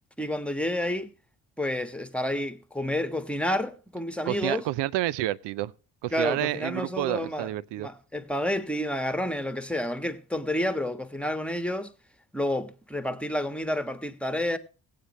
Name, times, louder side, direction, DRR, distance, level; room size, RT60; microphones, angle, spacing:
voice 1, 0.2-1.1 1.6-4.6 6.1-7.5 7.8-11.9 12.3-14.6, left 1 dB, 5° left, 1.4 m, -29 dB
voice 2, 4.3-5.7 6.0-7.9, right 15 dB, 70° right, 0.6 m, -29 dB
19.0 x 8.5 x 3.1 m
supercardioid pair, 55°, 43 cm